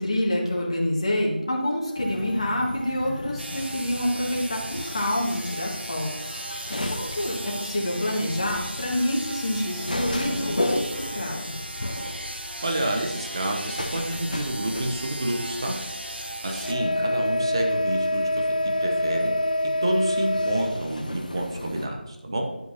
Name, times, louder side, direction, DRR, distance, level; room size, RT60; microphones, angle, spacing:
voice 1, 0.0-6.4 6.9-11.5, left 1 dB, 30° left, -2 dB, 1.6 m, -27 dB
sound 1, 1.4-17.2, right 2 dB, 10° left, 0.8 m, -44 dB
sound 2, 2.0-21.9, left 1 dB, 50° left, 1.1 m, -31 dB
sound 3, 3.4-16.7, right 1 dB, 80° right, 1.3 m, -37 dB
voice 2, 12.6-15.7 16.4-18.5 18.8-19.3 19.8-22.4, right 1 dB, 30° right, 2 dB, 1.0 m, -29 dB
11.0 x 7.7 x 2.9 m, 0.98 s
figure-of-eight pair, 170°, 6 cm